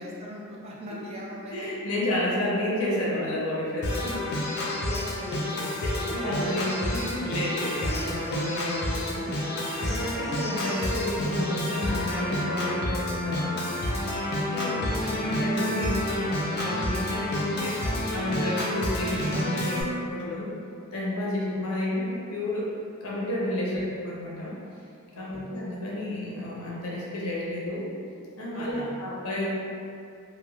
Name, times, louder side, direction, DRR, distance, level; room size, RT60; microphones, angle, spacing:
voice 1, 0.0-1.7 4.8-6.9 14.7-15.1 23.6-23.8 25.1-25.4 28.5-28.9, equal, 30° right, -4 dB, 0.3 m, -39 dB
voice 2, 1.5-4.4 6.0-13.6 14.2-17.7 18.1-20.5 20.9-22.7 23.0-24.5 25.2-27.9 28.4-29.5, left 1 dB, 80° left, -6 dB, 0.7 m, -31 dB
Organ, 3.8-19.8, left 1 dB, 50° left, 0.4 m, -29 dB
3.0 x 2.2 x 2.3 m, 2.4 s
head